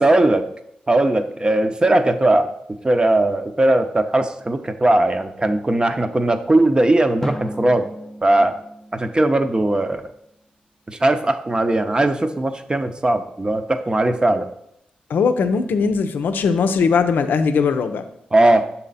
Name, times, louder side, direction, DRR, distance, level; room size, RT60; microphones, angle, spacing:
voice 1, 0.0-0.4 0.9-2.5 2.8-7.9 8.2-8.5 8.9-10.0 10.9-14.5 18.3-18.7, right 2 dB, 25° right, 8 dB, 0.7 m, -18 dB
Drum, 7.2-9.9, equal, 10° left, 0.7 m, -33 dB
voice 2, 15.1-18.0, left 5 dB, 75° left, 9 dB, 0.6 m, -19 dB
6.6 x 4.2 x 4.1 m, 0.76 s
supercardioid pair, 45°, 3 cm